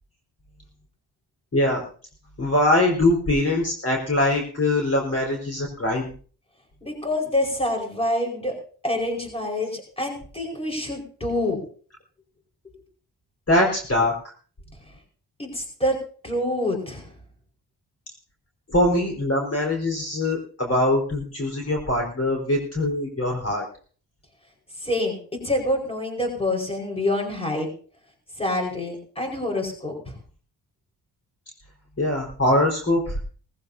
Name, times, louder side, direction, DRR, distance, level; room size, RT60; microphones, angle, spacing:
voice 1, 1.5-1.8 2.4-6.1 13.5-14.2 18.7-23.6 32.0-33.2, left 1 dB, 35° left, -1 dB, 4.5 m, -22 dB
voice 2, 6.8-8.5 8.8-11.6 15.4-15.9 16.2-17.1 24.8-25.2 25.4-27.7 28.4-30.1, left 1 dB, 15° left, 1 dB, 5.0 m, -26 dB
19.0 x 15.5 x 2.8 m, 0.42 s
cardioid pair, 95°, 40 cm